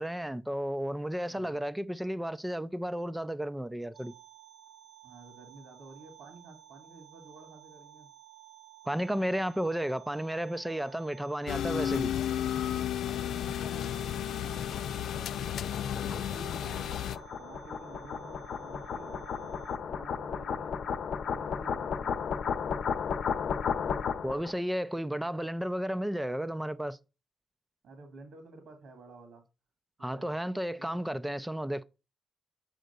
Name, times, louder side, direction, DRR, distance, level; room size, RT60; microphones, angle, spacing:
voice 1, 0.0-4.1 8.9-12.1 24.2-27.0 30.0-31.8, equal, 5° right, 0.5 m, -33 dB
voice 2, 1.2-1.6 5.0-8.1 13.2-14.6 15.1-17.1 17.4-19.5 19.9-21.0 21.3-22.2 25.2-25.3 27.8-29.4 30.0-30.4 30.8-31.0, right 3 dB, 75° right, 2.0 m, -51 dB
sound 1, 3.9-19.8, right 12 dB, 55° right, 0.7 m, -54 dB
sound 2, 11.5-17.2, left 10 dB, 85° left, 0.4 m, -33 dB
sound 3, 14.5-24.5, left 6 dB, 60° left, 0.8 m, -34 dB
8.0 x 3.7 x 6.7 m
wide cardioid pair, 150°, 0 cm